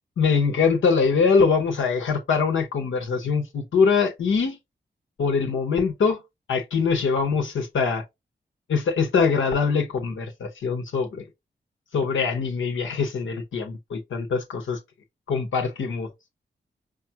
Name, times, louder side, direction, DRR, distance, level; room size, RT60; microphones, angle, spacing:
voice 1, 0.2-4.6 5.2-6.2 6.5-8.0 8.7-11.2 11.9-14.8 15.3-16.1, left 5 dB, 85° left, 1.0 m, -23 dB
5.1 x 2.4 x 2.8 m
cardioid pair, 45°, 20 cm